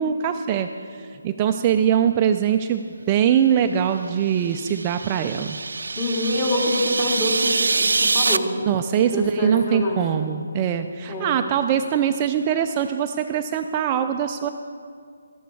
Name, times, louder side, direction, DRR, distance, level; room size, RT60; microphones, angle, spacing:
voice 1, 0.0-5.6 8.7-14.5, right 9 dB, 25° right, 6 dB, 0.4 m, -22 dB
sound 1, 4.2-8.4, right 3 dB, 75° right, 0.5 m, -24 dB
voice 2, 6.0-8.5 9.0-10.1 11.1-11.4, left 1 dB, 20° left, -2 dB, 2.3 m, -25 dB
12.5 x 11.5 x 4.7 m, 2.2 s
figure-of-eight pair, 155°, 0 cm